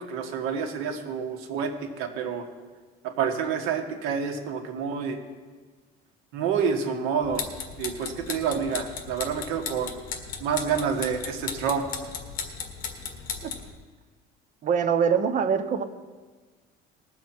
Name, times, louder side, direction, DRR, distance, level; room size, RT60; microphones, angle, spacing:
voice 1, 0.0-2.4 3.0-5.2 6.3-7.5 7.8-9.9 10.4-11.8, right 6 dB, 90° right, 4 dB, 1.9 m, -28 dB
sound 1, 7.2-13.7, left 6 dB, 40° left, 1.6 m, -36 dB
voice 2, 14.6-15.8, right 7 dB, 40° right, 9 dB, 0.9 m, -23 dB
20.0 x 7.5 x 4.5 m, 1.4 s
cardioid pair, 155°, 21 cm